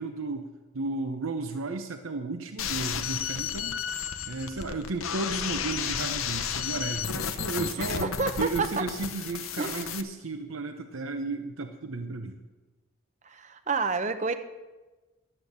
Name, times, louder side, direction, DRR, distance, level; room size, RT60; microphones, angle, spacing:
voice 1, 0.0-3.8 4.3-8.1 8.4-12.4, right 3 dB, 80° right, 5 dB, 0.8 m, -34 dB
sound 1, 2.6-10.0, left 7 dB, 80° left, 0.7 m, -33 dB
voice 2, 7.8-8.8 9.6-9.9 13.2-14.3, right 4 dB, 35° right, 9 dB, 0.7 m, -30 dB
12.0 x 8.8 x 6.6 m, 1.2 s
head